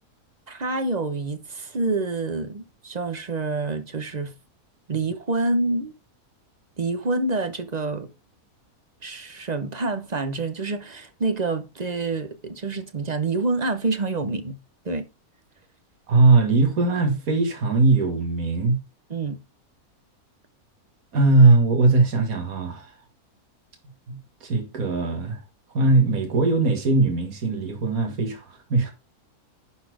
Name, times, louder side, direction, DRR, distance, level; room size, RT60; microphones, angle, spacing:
voice 1, 0.5-4.3 4.9-5.9 6.8-8.1 9.0-14.6 14.8-15.0 19.1-19.4, right 3 dB, 35° right, 0.8 m, -27 dB
voice 2, 16.1-18.8 21.1-22.9 24.1-25.4 25.7-28.9, right 3 dB, 65° right, 2.3 m, -20 dB
11.0 x 4.2 x 4.8 m
omnidirectional pair, 1.6 m